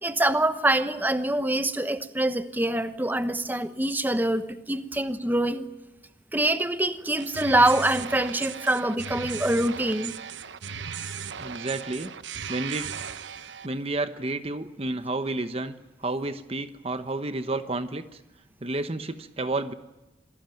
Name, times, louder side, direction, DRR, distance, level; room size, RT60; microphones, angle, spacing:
voice 1, 0.0-5.7 6.3-10.2, right 1 dB, 10° right, 10 dB, 1.1 m, -25 dB
sound 1, 7.2-13.7, right 7 dB, 75° right, 1.0 m, -37 dB
voice 2, 11.4-12.1 12.5-12.9 13.6-18.2 18.6-19.7, right 2 dB, 30° right, 10 dB, 1.0 m, -31 dB
26.5 x 18.5 x 9.2 m, 1.0 s
head